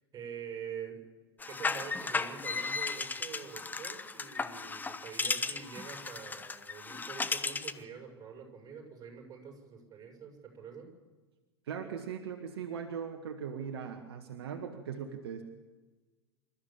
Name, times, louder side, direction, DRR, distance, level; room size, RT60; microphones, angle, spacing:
voice 1, 0.1-1.0 1.5-10.9, right 7 dB, 25° right, 2 dB, 6.7 m, -46 dB
sound 1, 1.4-7.8, left 4 dB, 15° left, 1.0 m, -35 dB
voice 2, 11.7-15.4, right 7 dB, 65° right, 4 dB, 1.9 m, -39 dB
27.0 x 14.0 x 7.4 m, 1.3 s
figure-of-eight pair, 90°, 14 cm